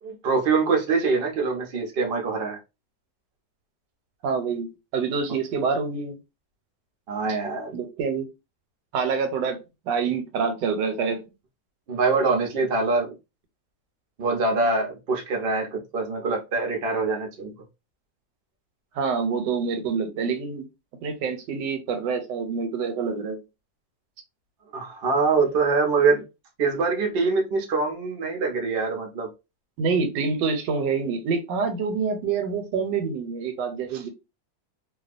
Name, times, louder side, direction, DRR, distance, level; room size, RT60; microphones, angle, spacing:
voice 1, 0.0-2.6 7.1-7.7 11.9-13.1 14.2-17.5 24.7-26.2 26.6-29.3 33.9-34.0, right 4 dB, 60° right, 0.6 m, -24 dB
voice 2, 4.2-4.7 4.9-6.2 7.7-8.3 8.9-9.6 9.9-11.2 18.9-20.6 21.0-23.4 29.8-34.1, right 5 dB, 80° right, 1.3 m, -26 dB
2.8 x 2.3 x 2.4 m
omnidirectional pair, 1.9 m